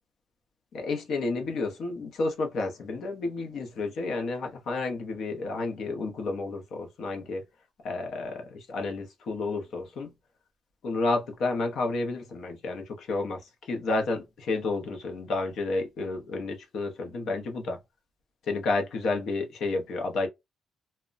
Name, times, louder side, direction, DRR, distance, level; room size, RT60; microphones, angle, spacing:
voice 1, 0.7-7.4 7.8-10.1 10.8-17.8 18.5-20.3, left 3 dB, 70° left, 0.7 m, -31 dB
2.1 x 2.1 x 3.7 m
cardioid pair, 90°, 0 cm